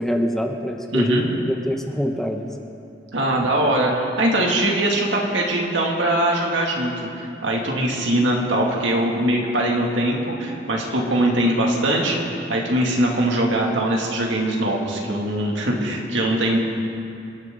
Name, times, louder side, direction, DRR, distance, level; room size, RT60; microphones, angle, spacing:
voice 1, 0.0-2.5, equal, ahead, 3 dB, 0.8 m, -24 dB
voice 2, 0.9-1.3 3.1-12.2 12.5-16.6, right 1 dB, 65° right, -1 dB, 2.3 m, -21 dB
28.0 x 10.5 x 3.8 m, 2.7 s
head